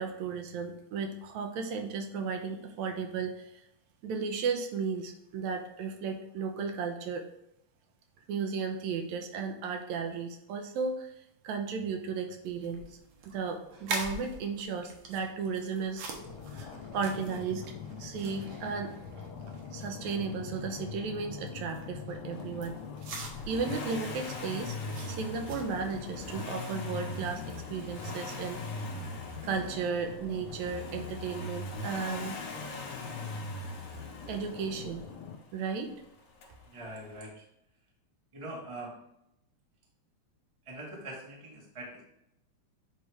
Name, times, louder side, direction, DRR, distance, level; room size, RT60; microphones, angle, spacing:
voice 1, 0.0-3.5 4.0-7.3 8.3-11.1 11.4-13.0 13.2-16.0 16.5-17.7 18.0-18.9 19.7-22.8 23.5-24.7 25.0-28.6 29.4-32.4 34.3-35.0 35.5-35.9, right 5 dB, 80° right, 5 dB, 1.9 m, -34 dB
sound 1, 12.4-29.7, right 3 dB, 60° right, 1.6 m, -46 dB
sound 2, 16.2-35.4, left 6 dB, 80° left, 1.2 m, -44 dB
Accelerating revving vroom, 23.2-35.1 36.4-36.5, left 2 dB, 65° left, 1.9 m, -41 dB
voice 2, 36.7-37.4 38.3-39.0 40.6-42.0, right 1 dB, 30° right, -2 dB, 0.6 m, -43 dB
8.1 x 3.2 x 4.7 m, 0.79 s
omnidirectional pair, 3.4 m